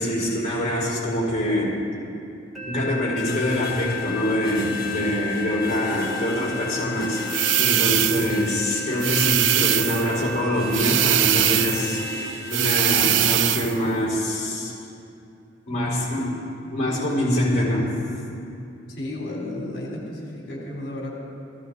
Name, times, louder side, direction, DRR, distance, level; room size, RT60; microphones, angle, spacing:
voice 1, 0.0-1.8 2.7-14.7 15.7-16.3 16.7-18.1, equal, 40° left, -5 dB, 4.4 m, -24 dB
sound 1, 2.5-12.2, left 3 dB, ahead, 3.4 m, -33 dB
sound 2, 3.2-12.7, left 2 dB, 20° left, 2.4 m, -39 dB
sound 3, 7.3-8.4 9.0-10.1 10.7-11.9 12.5-13.8, right 12 dB, 75° right, 0.5 m, -21 dB
voice 2, 18.9-21.1, left 1 dB, 60° left, -4 dB, 3.5 m, -33 dB
18.5 x 15.0 x 4.0 m, 2.6 s
head